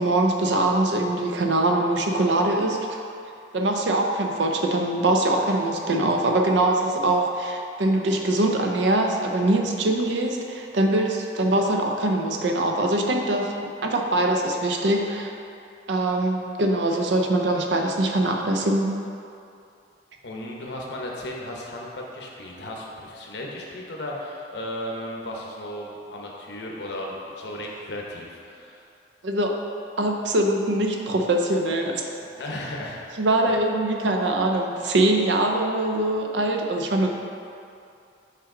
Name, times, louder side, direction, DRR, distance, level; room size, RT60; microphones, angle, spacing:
voice 1, 0.0-3.0 3.5-13.5 13.8-15.3 15.9-18.9 29.2-29.5 30.0-32.1 33.2-37.1, right 1 dB, 70° right, 2 dB, 0.6 m, -23 dB
voice 2, 20.2-28.8 32.4-33.0 33.5-33.6 37.0-37.1, left 1 dB, 65° left, -1 dB, 0.9 m, -35 dB
5.8 x 4.6 x 3.7 m, 2.6 s
head